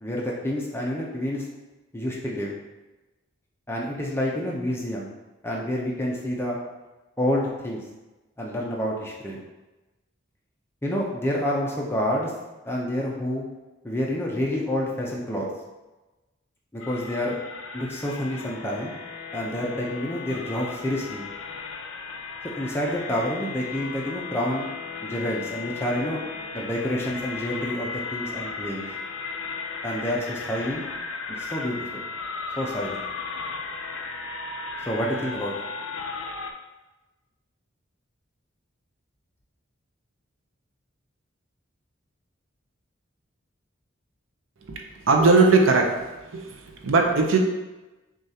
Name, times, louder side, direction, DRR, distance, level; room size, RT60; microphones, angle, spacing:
voice 1, 0.0-1.4 1.9-2.6 3.7-5.1 5.4-6.6 7.2-7.8 8.4-9.4 10.8-12.3 12.6-13.5 13.8-15.5 16.7-17.4 17.7-18.9 19.3-21.3 22.6-24.7 25.0-26.2 26.5-28.9 29.8-30.8 31.3-32.0 32.6-33.0 34.9-35.5, left 1 dB, 10° left, -3 dB, 0.6 m, -28 dB
sound 1, 16.8-36.5, left 4 dB, 80° left, 0.4 m, -35 dB
voice 2, 44.7-47.4, right 3 dB, 80° right, 2 dB, 0.6 m, -20 dB
6.4 x 2.4 x 2.8 m, 1.1 s
head